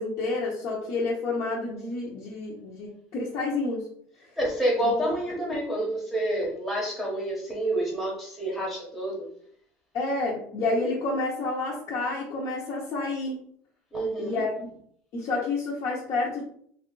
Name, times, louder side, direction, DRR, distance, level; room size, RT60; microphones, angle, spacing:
voice 1, 0.0-3.9 9.9-13.4 14.2-14.7 15.1-16.4, left 3 dB, 40° left, -5 dB, 0.8 m, -29 dB
voice 2, 4.4-9.3 13.9-14.4, right 1 dB, ahead, -4 dB, 1.0 m, -28 dB
3.4 x 2.3 x 3.8 m, 0.63 s
cardioid pair, 170°, 7 cm